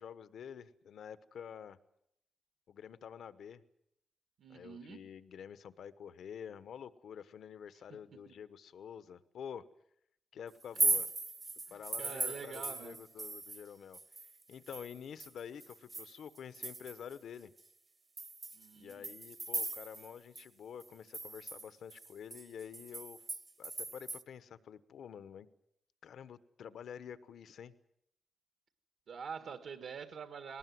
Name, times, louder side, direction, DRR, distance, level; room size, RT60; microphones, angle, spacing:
voice 1, 0.0-1.8 2.7-3.6 4.5-9.6 10.3-11.1 11.7-14.0 14.5-17.5 18.7-23.2 23.6-25.5 26.0-27.7, left 8 dB, 80° left, 14 dB, 1.0 m, -48 dB
voice 2, 4.4-5.0 8.3-8.4 10.8-11.0 11.7-13.0 18.5-19.1 29.1-30.6, right 6 dB, 75° right, 8 dB, 1.6 m, -46 dB
sound 1, 10.6-13.7 13.9-17.1 17.6-17.7 18.2-20.1 20.4-20.5 20.8-24.2, right 3 dB, 25° right, 0.8 m, -38 dB
20.5 x 18.5 x 9.4 m, 0.76 s
wide cardioid pair, 165°, 0 cm